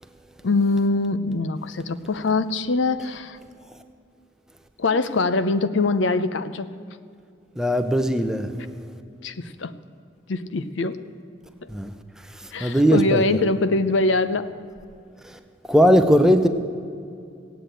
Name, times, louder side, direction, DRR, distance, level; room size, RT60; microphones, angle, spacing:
voice 1, 0.4-3.4 4.8-6.7 9.2-9.7 10.3-11.0 11.6-11.7 12.5-14.5, left 3 dB, 70° left, 0.6 m, -23 dB
voice 2, 7.6-8.5 11.7-11.9 12.2-13.2 15.2-15.4 15.6-16.5, equal, 5° right, 0.6 m, -19 dB
16.5 x 8.2 x 9.0 m
head